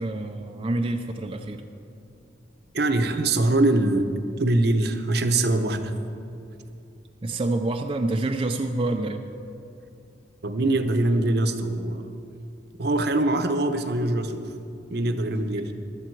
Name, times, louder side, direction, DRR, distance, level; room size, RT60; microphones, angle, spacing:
voice 1, 0.0-1.6 7.2-9.2, right 2 dB, 30° right, 4 dB, 0.5 m, -27 dB
voice 2, 2.7-5.9 10.4-12.1 12.8-14.5 14.9-15.7, right 2 dB, 60° right, 8 dB, 0.9 m, -23 dB
15.5 x 12.0 x 4.7 m, 2.7 s
head